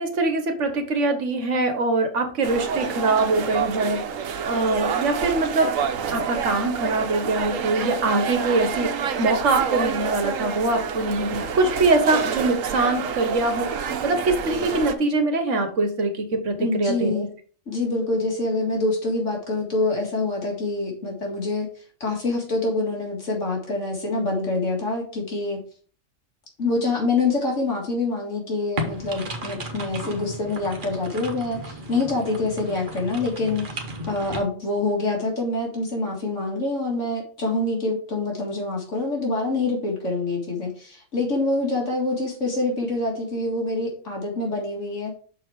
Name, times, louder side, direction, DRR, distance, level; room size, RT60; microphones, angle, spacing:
voice 1, 0.0-4.0 4.4-5.7 6.1-17.3, right 2 dB, 70° right, 6 dB, 1.5 m, -23 dB
sound 1, 2.4-15.0, right 6 dB, 90° right, 1.1 m, -28 dB
voice 2, 16.6-17.3 17.7-21.7 22.0-25.6 26.6-45.2, left 2 dB, 70° left, -1 dB, 2.3 m, -26 dB
sound 2, 28.8-34.4, right 1 dB, 40° right, 1.2 m, -34 dB
6.3 x 4.3 x 4.7 m, 0.43 s
omnidirectional pair, 1.3 m